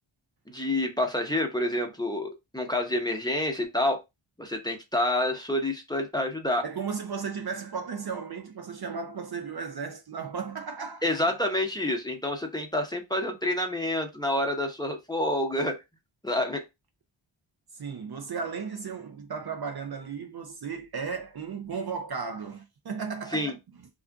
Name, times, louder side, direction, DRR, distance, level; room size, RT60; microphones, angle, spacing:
voice 1, 0.5-4.0 4.4-6.6 11.0-15.8 16.2-16.6 23.3-23.5, left 1 dB, 10° left, 0.8 m, -28 dB
voice 2, 6.6-11.0 17.7-23.9, right 5 dB, 50° right, 0.5 m, -35 dB
2.4 x 2.4 x 3.4 m
cardioid pair, 50°, 49 cm